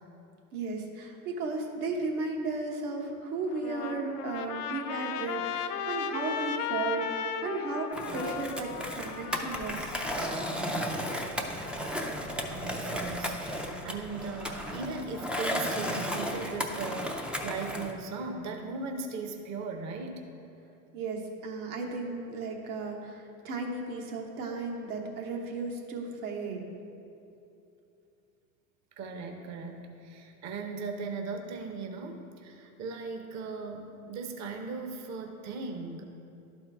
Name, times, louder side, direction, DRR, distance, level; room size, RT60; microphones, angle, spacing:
voice 1, 0.5-10.0 20.9-26.7, right 3 dB, 70° right, 1 dB, 1.3 m, -35 dB
Trumpet, 3.5-10.9, left 8 dB, 90° left, 0.6 m, -36 dB
Skateboard, 7.9-17.9, equal, 5° right, 0.3 m, -34 dB
voice 2, 12.5-20.2 29.0-36.0, right 4 dB, 40° right, 4 dB, 0.8 m, -38 dB
11.5 x 4.4 x 3.5 m, 2.7 s
hypercardioid pair, 95°, 45 cm